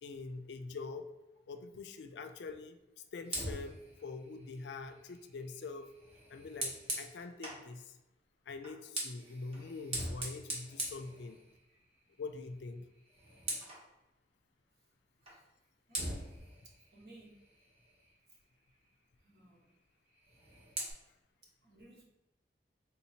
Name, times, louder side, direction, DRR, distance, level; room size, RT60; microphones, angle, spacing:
voice 1, 0.0-1.1 1.5-2.8 3.1-5.9 6.3-7.9 8.5-11.4 12.2-12.9, left 4 dB, 80° left, 7 dB, 0.4 m, -44 dB
Fire, 3.2-7.7 8.6-11.8 12.2-12.5 12.8-13.9 15.3-15.4 15.9-18.2 20.1-20.9, right 1 dB, 35° right, 0.8 m, -42 dB
voice 2, 15.9-16.3 16.9-17.3 19.2-19.7 21.6-22.0, right 1 dB, 65° right, -4 dB, 1.1 m, -57 dB
3.7 x 2.8 x 2.7 m, 1.0 s
head